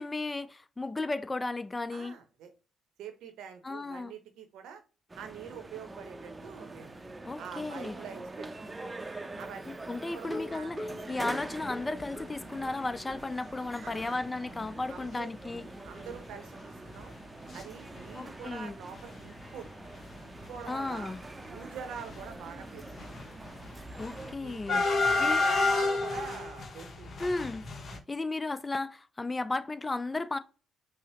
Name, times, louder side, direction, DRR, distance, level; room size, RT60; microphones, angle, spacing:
voice 1, 0.0-2.2 3.6-4.1 7.2-8.0 9.7-15.6 18.1-18.8 20.7-21.2 24.0-24.8 25.2-25.4 27.2-27.6 28.1-30.4, left 2 dB, 25° left, 0.4 m, -34 dB
voice 2, 1.9-2.5 3.0-4.8 5.2-7.0 7.4-8.7 9.4-9.6 10.1-10.7 13.8-14.2 14.9-15.3 15.8-17.1 17.5-19.7 20.2-21.1 21.5-22.9 24.4-27.3 27.9-28.0, right 7 dB, 75° right, 0.7 m, -45 dB
sound 1, 5.1-24.4, right 2 dB, 25° right, 0.6 m, -45 dB
sound 2, 10.2-12.8 13.1-13.2 13.6-13.7 14.0-14.1, left 1 dB, ahead, 1.1 m, -42 dB
sound 3, 12.0-12.2 12.7-12.8 13.0-13.2 13.9-14.0 14.5-14.7 14.9-15.0 15.4-17.6 17.9-18.6 18.9-28.0, left 3 dB, 50° left, 0.8 m, -32 dB
5.5 x 2.0 x 2.8 m
hypercardioid pair, 50°, 0 cm